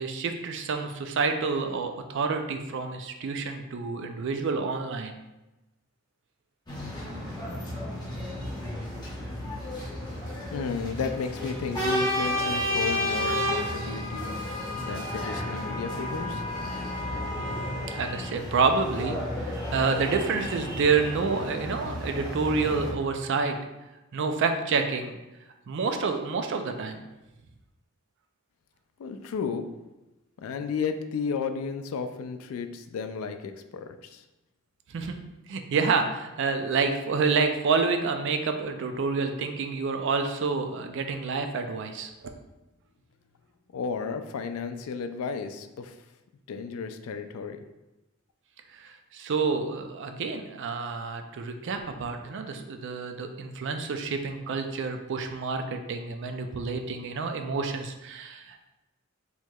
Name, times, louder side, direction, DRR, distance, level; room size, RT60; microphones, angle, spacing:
voice 1, 0.0-5.1 17.4-19.2 19.4-23.6 24.1-25.2 25.7-27.0 34.9-35.2 35.5-42.1 48.7-58.7, right 4 dB, 60° right, 6 dB, 0.4 m, -28 dB
sound 1, 6.7-22.9, left 1 dB, 20° left, 0.8 m, -32 dB
voice 2, 10.5-14.4 14.8-16.4 29.0-29.7 30.4-34.2 43.7-46.0 46.5-47.6, left 5 dB, 80° left, 8 dB, 0.3 m, -33 dB
4.5 x 2.9 x 2.3 m, 1.0 s
head